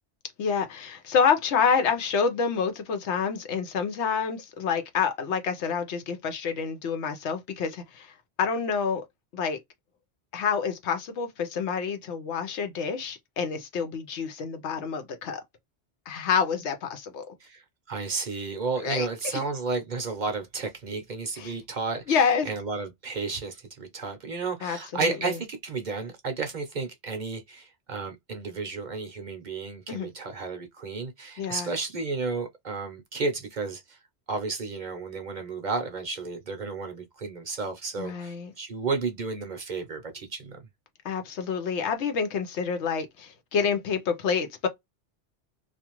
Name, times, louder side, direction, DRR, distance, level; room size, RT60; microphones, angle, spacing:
voice 1, 0.4-9.0 9.3-9.6 10.3-15.4 16.1-17.2 18.8-19.4 21.4-21.5 22.1-22.5 24.6-24.8 25.0-25.3 29.9-30.1 31.4-31.7 38.0-38.5 41.0-44.7, left 6 dB, 80° left, 1.0 m, -28 dB
voice 2, 17.4-34.0 34.3-40.6, right 4 dB, 50° right, 0.7 m, -32 dB
2.5 x 2.3 x 2.9 m
omnidirectional pair, 1.1 m